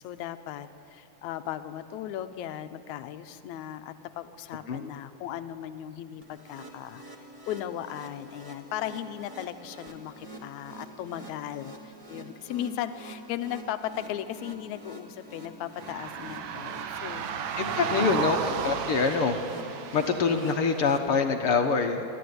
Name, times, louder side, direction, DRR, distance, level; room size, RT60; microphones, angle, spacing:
voice 1, 0.0-7.0 7.5-18.2, left 11 dB, 80° left, 10 dB, 2.2 m, -37 dB
sound 1, 6.2-21.0, right 1 dB, 10° right, 2.0 m, -47 dB
sound 2, 15.8-21.0, right 8 dB, 75° right, 2.3 m, -34 dB
voice 2, 17.6-18.4 18.6-22.0, left 5 dB, 60° left, 4 dB, 1.7 m, -25 dB
28.5 x 12.0 x 9.5 m, 2.8 s
omnidirectional pair, 3.4 m